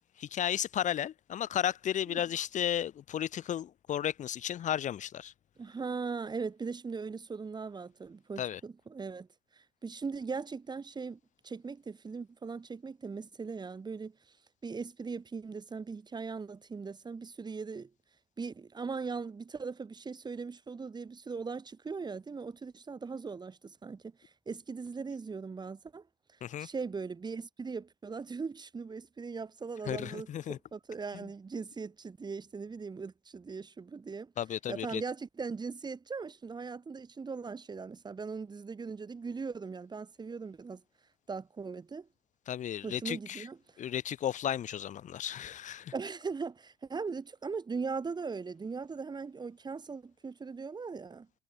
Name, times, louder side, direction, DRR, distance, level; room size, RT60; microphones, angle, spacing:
voice 1, 0.2-5.3 8.4-8.6 26.4-26.7 29.8-30.6 31.1-31.3 34.4-35.0 42.5-43.5 43.8-45.9, left 10 dB, 55° left, 3.5 m, -34 dB
voice 2, 5.6-9.3 9.8-14.1 14.6-17.9 18.4-24.1 24.5-26.0 26.6-34.3 34.7-40.8 41.3-42.1 42.8-43.6 45.9-51.3, right 5 dB, 30° right, 3.7 m, -39 dB
supercardioid pair, 80°, 15 cm